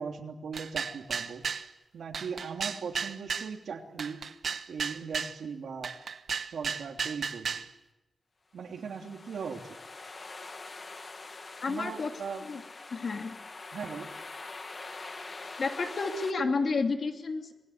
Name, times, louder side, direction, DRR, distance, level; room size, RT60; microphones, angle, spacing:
voice 1, 0.0-1.4 1.9-4.2 4.7-6.0 6.4-7.6 8.5-9.8 11.7-12.4 13.7-14.1, right 6 dB, 90° right, 3 dB, 3.0 m, -39 dB
sound 1, 0.5-1.7 2.1-3.5 4.0-5.4 5.8-7.7, right 6 dB, 65° right, 1.0 m, -34 dB
sound 2, 8.7-16.3, left 3 dB, 35° left, 1.7 m, -44 dB
voice 2, 11.6-12.1 12.4-12.6 12.9-13.4 15.6-17.5, left 4 dB, 50° left, 4 dB, 2.8 m, -30 dB
28.0 x 20.5 x 8.6 m, 1.0 s
wide cardioid pair, 140°, 0 cm